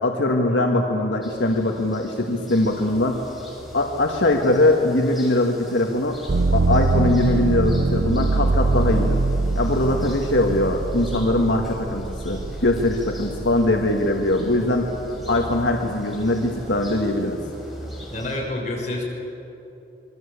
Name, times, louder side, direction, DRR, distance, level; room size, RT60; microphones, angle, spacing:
voice 1, 0.0-3.2 3.7-6.2 6.5-9.2 9.6-14.9 15.3-17.4, left 1 dB, 85° left, 1 dB, 1.8 m, -21 dB
sound 1, 1.2-18.4, equal, ahead, 6.0 m, -40 dB
sound 2, 6.3-14.1 14.6-15.4, right 3 dB, 85° right, 0.7 m, -23 dB
voice 2, 18.1-19.0, left 1 dB, 40° left, -2 dB, 6.9 m, -28 dB
26.5 x 22.0 x 8.4 m, 2.9 s
head